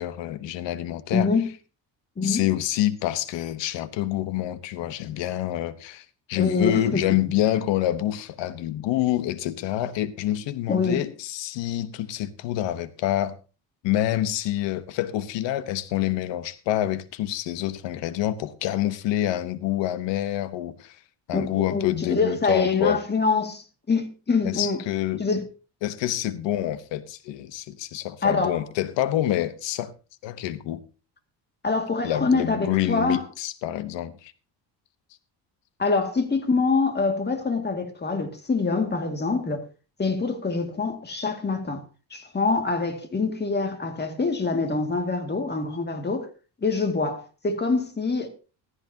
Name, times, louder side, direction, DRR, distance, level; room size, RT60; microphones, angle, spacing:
voice 1, 0.0-1.3 2.2-13.3 13.8-21.0 21.3-23.0 24.4-25.2 25.8-29.9 30.2-30.8 32.0-34.3, left 13 dB, 85° left, 1.1 m, -27 dB
voice 2, 1.1-1.5 2.2-2.4 6.3-7.1 10.7-11.1 21.3-24.8 25.2-25.4 28.2-28.6 31.6-33.3 35.8-39.6 40.0-41.8 42.1-46.3 46.6-48.3, left 4 dB, 25° left, 2.2 m, -25 dB
14.5 x 14.5 x 2.8 m
cardioid pair, 130°, 43 cm